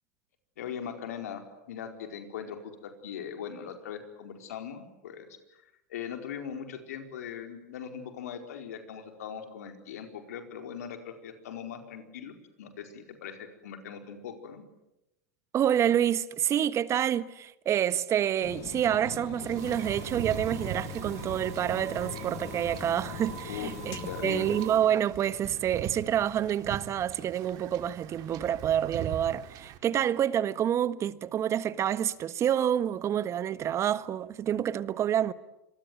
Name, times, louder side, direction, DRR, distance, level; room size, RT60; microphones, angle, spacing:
voice 1, 0.6-5.3 5.9-14.6 23.4-24.6, left 8 dB, 80° left, 4.6 m, -40 dB
voice 2, 15.5-35.3, right 10 dB, 35° right, 1.4 m, -28 dB
sound 1, 18.4-24.6, left 17 dB, 50° left, 1.1 m, -42 dB
Wind / Ocean / Boat Water vehicle, 19.4-29.8, right 9 dB, 50° right, 3.0 m, -42 dB
sound 2, 19.6-24.8, right 9 dB, 80° right, 5.7 m, -45 dB
26.5 x 23.0 x 9.5 m
hypercardioid pair, 105°, 8 cm